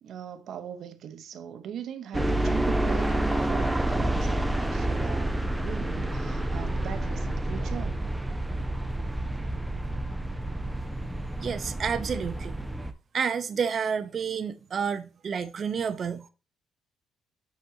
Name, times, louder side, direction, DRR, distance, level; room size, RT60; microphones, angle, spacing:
voice 1, 0.0-8.0, right 9 dB, 65° right, 1.1 m, -40 dB
sound 1, 2.1-12.9, right 1 dB, 10° right, 0.8 m, -29 dB
voice 2, 11.4-12.6 13.1-16.3, right 6 dB, 50° right, 0.8 m, -30 dB
10.5 x 4.3 x 2.8 m
cardioid pair, 90°, 0 cm